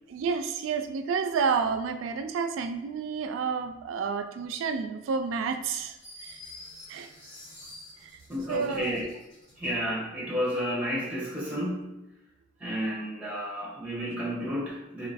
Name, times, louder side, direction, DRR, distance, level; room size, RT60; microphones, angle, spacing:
voice 1, 0.1-6.0 6.2-6.4 6.9-7.1 8.0-8.2 8.5-9.0, right 5 dB, 85° right, 8 dB, 0.3 m, -30 dB
sound 1, 5.7-9.7, left 1 dB, 30° left, 1.2 m, -48 dB
voice 2, 8.3-9.1 9.6-12.0 12.6-15.1, equal, 5° right, -4 dB, 1.2 m, -31 dB
3.0 x 3.0 x 4.0 m, 0.98 s
head